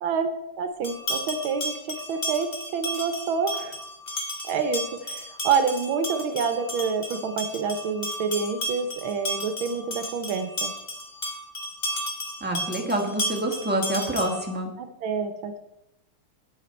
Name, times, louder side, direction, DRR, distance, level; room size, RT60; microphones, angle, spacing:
voice 1, 0.0-3.8 4.4-10.7 14.8-15.6, right 5 dB, 75° right, 9 dB, 1.5 m, -28 dB
sound 1, 0.8-14.5, equal, 20° left, 1.5 m, -33 dB
voice 2, 12.4-14.7, right 1 dB, 5° right, 0 dB, 1.1 m, -27 dB
9.1 x 8.9 x 4.3 m, 0.87 s
omnidirectional pair, 2.4 m